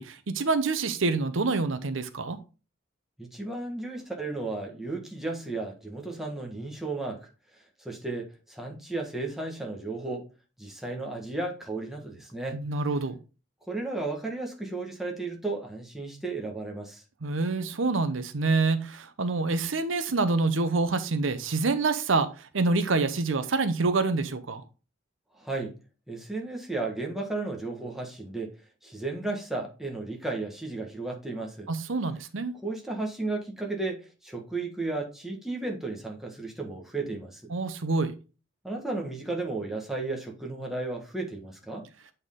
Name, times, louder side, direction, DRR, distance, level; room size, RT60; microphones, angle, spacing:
voice 1, 0.0-2.4 12.5-13.2 17.2-24.6 31.7-32.5 37.5-38.1, right 3 dB, 75° right, 0.7 m, -27 dB
voice 2, 3.2-10.2 10.6-12.6 13.7-17.0 25.3-25.7 26.1-31.7 32.6-37.5 38.6-41.8, right 2 dB, ahead, 1.5 m, -34 dB
8.0 x 4.4 x 3.6 m
head